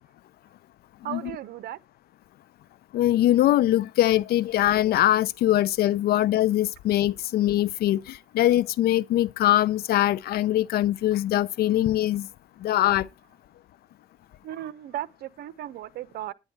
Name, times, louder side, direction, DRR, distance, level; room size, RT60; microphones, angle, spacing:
voice 1, 1.0-1.8 14.4-16.3, right 12 dB, 70° right, 1.1 m, -36 dB
voice 2, 2.9-12.3 12.6-13.1, left 13 dB, 65° left, 0.7 m, -22 dB
10.5 x 9.9 x 4.6 m
cardioid pair, 110°, 17 cm